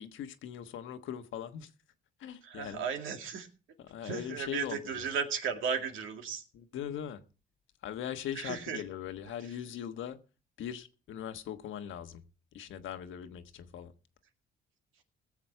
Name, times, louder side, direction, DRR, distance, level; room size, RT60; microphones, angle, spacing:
voice 1, 0.0-1.7 2.2-2.9 3.8-5.1 6.5-7.2 7.8-10.2 10.6-12.2 12.5-13.9, left 9 dB, 80° left, 1.3 m, -40 dB
voice 2, 2.4-3.5 4.0-6.4 8.4-8.8, right 6 dB, 80° right, 2.1 m, -35 dB
18.5 x 7.4 x 4.5 m
cardioid pair, 90°, 20 cm